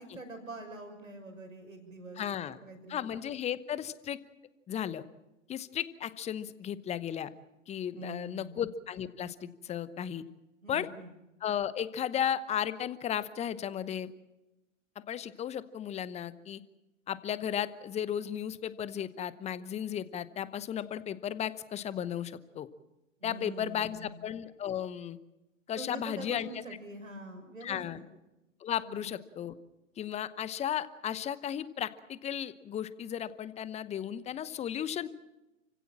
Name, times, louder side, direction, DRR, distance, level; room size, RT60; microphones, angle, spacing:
voice 1, 0.0-2.2 2.6-3.1 8.0-8.6 10.6-11.1 23.2-24.2 25.8-27.8 28.8-29.1, right 2 dB, 85° right, 5 dB, 6.2 m, -44 dB
voice 2, 2.2-2.6 2.9-4.2 4.7-5.0 5.5-7.3 7.7-10.2 10.7-10.9 11.4-14.1 15.1-16.6 17.1-22.7 23.2-25.2 25.7-26.6 27.6-28.0 28.6-29.5 30.0-35.1, left 9 dB, 15° left, 16 dB, 0.9 m, -35 dB
29.0 x 16.5 x 7.4 m, 1.0 s
figure-of-eight pair, 105°, 39 cm